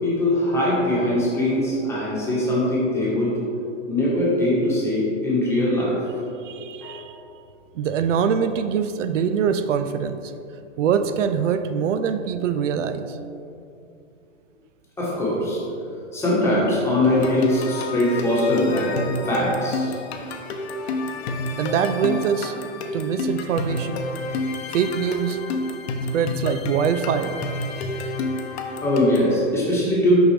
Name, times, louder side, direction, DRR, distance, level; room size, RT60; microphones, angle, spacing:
voice 1, 0.0-3.4 3.9-6.0 6.8-7.4 15.0-15.6 16.1-19.0 19.2-19.9 25.9-26.0 28.8-30.2, left 1 dB, 5° left, -7 dB, 1.3 m, -22 dB
voice 2, 6.4-7.1 7.7-10.3 10.8-13.2 21.6-22.6 22.9-24.0 24.7-25.4 26.1-27.4, right 7 dB, 85° right, 10 dB, 0.5 m, -23 dB
sound 1, 17.0-29.4, left 2 dB, 60° left, 0.7 m, -29 dB
6.0 x 5.4 x 3.3 m, 2.5 s
hypercardioid pair, 145°, 36 cm